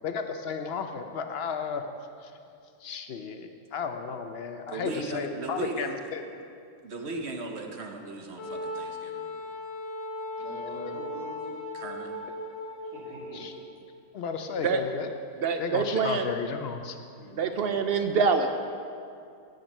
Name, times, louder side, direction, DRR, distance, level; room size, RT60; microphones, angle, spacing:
voice 1, 0.0-1.9 2.2-2.3 2.8-6.2 13.3-13.5 14.1-15.2 15.6-17.0, left 5 dB, 60° left, 7 dB, 0.7 m, -33 dB
voice 2, 4.7-6.0 6.8-9.3 11.7-12.2, right 2 dB, 50° right, 3 dB, 1.0 m, -37 dB
Wind instrument woodwind instrument, 8.4-13.5, left 2 dB, 35° left, 1.7 m, -37 dB
voice 3, 10.4-11.4 12.8-13.4 14.7-14.8 17.2-17.6, equal, 85° right, -8 dB, 3.1 m, -44 dB
voice 4, 15.4-16.3 17.4-18.5, right 5 dB, 70° right, 7 dB, 0.5 m, -25 dB
9.1 x 8.9 x 5.3 m, 2.5 s
omnidirectional pair, 1.5 m